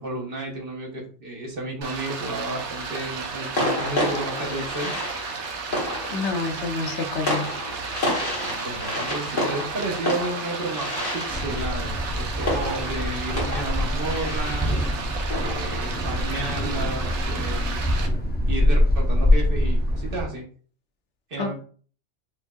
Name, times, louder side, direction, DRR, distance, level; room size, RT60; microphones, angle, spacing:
voice 1, 0.0-4.9 8.4-10.9 11.1-14.9 15.3-17.8 18.5-20.4 21.3-21.5, right 2 dB, 55° right, -1 dB, 1.2 m, -32 dB
Stream, 1.8-18.1, right 4 dB, 80° right, 1.0 m, -33 dB
sound 1, 2.3-2.6 3.6-17.0, left 1 dB, 50° left, 1.3 m, -31 dB
voice 2, 6.1-7.5 21.4-21.5, left 4 dB, 80° left, 4 dB, 1.0 m, -28 dB
Thunder, 11.3-20.3, left 1 dB, 10° left, 0.5 m, -24 dB
4.7 x 2.6 x 2.3 m, 0.43 s
omnidirectional pair, 1.2 m